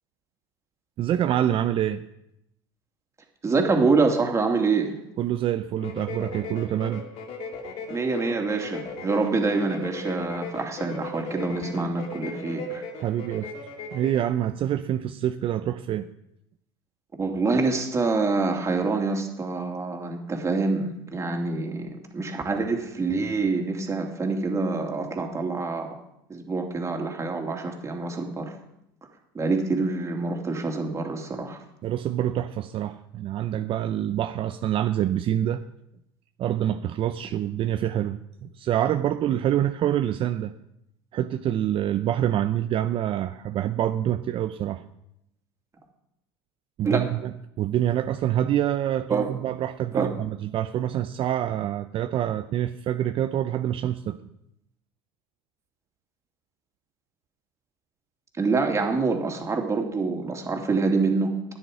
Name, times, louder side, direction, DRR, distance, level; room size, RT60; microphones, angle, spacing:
voice 1, 1.0-2.0 5.2-7.0 13.0-13.5 13.9-16.1 31.8-35.6 36.4-40.5 41.1-44.8 46.8-54.2, right 11 dB, 45° right, 8 dB, 0.7 m, -26 dB
voice 2, 3.4-5.0 7.9-12.8 17.2-25.9 26.3-28.5 29.3-31.6 46.8-47.0 49.1-49.3 49.9-50.1 58.4-61.3, right 3 dB, 25° right, 2 dB, 2.7 m, -26 dB
sound 1, 5.8-14.3, left 3 dB, 50° left, 2.2 m, -37 dB
12.5 x 9.8 x 5.0 m, 0.80 s
hypercardioid pair, 85°, 13 cm